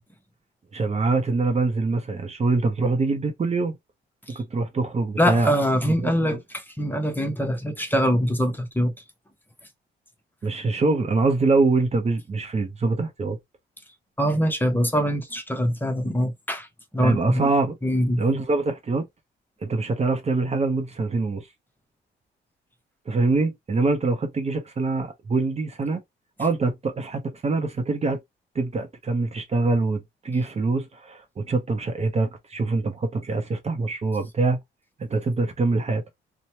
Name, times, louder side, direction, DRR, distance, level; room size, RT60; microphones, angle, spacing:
voice 1, 0.7-3.8 4.3-5.5 6.0-6.4 10.4-13.4 17.0-17.8 18.2-19.1 19.6-21.5 23.1-26.0 26.4-28.2 28.5-34.6 35.0-36.0, right 3 dB, 30° right, 0.7 m, -24 dB
voice 2, 5.2-8.9 14.2-16.7 16.9-17.5 17.8-18.2, equal, 10° left, 0.8 m, -23 dB
2.9 x 2.1 x 2.8 m
cardioid pair, 90°, 20 cm